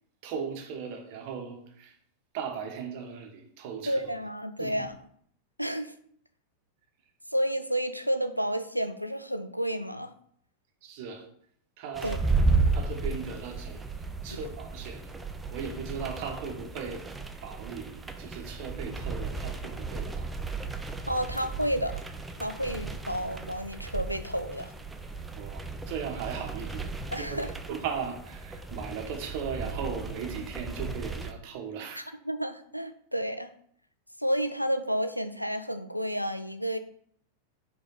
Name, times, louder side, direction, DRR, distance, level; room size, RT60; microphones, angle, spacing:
voice 1, 0.2-1.9 2.3-3.9 4.6-4.8 10.8-11.3 11.8-12.2 12.7-13.9 14.2-15.1 15.5-17.1 17.4-20.3 25.3-32.1, right 6 dB, 45° right, 1.1 m, -37 dB
voice 2, 3.9-5.0 5.6-5.9 7.3-10.1 12.0-12.2 14.3-14.4 21.1-22.0 22.4-24.7 27.1-27.5 31.9-33.5 34.2-36.8, equal, 90° right, 0.4 m, -31 dB
sound 1, 11.9-31.3, right 3 dB, 10° right, 0.5 m, -34 dB
5.1 x 3.4 x 5.5 m
figure-of-eight pair, 90°, 0 cm